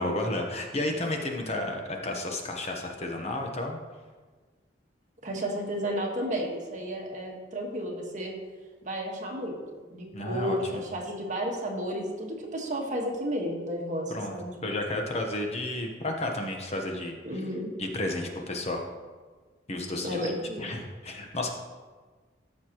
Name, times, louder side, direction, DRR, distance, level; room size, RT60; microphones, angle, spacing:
voice 1, 0.0-3.8 10.1-10.8 14.1-14.3 14.6-17.2 17.8-18.8 19.7-20.3 20.6-21.5, left 1 dB, 35° left, 2 dB, 1.0 m, -32 dB
voice 2, 5.2-8.3 8.8-9.6 9.9-14.5 17.2-17.7 20.0-20.7, equal, 45° right, 0 dB, 1.5 m, -32 dB
14.0 x 6.5 x 3.0 m, 1.4 s
head